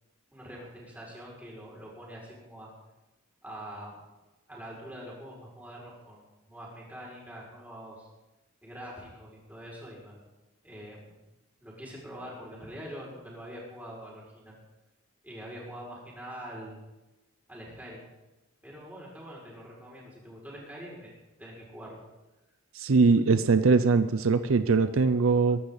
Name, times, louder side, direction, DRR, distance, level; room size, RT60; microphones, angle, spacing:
voice 1, 0.3-2.7 3.4-4.0 4.5-8.1 8.6-10.2 10.6-11.2 11.6-14.6 15.2-16.8 17.5-18.1 18.6-21.1 21.4-22.0, equal, 10° right, -4 dB, 5.5 m, -44 dB
voice 2, 22.7-25.6, right 4 dB, 70° right, 11 dB, 0.6 m, -22 dB
22.5 x 12.0 x 4.0 m, 1.1 s
head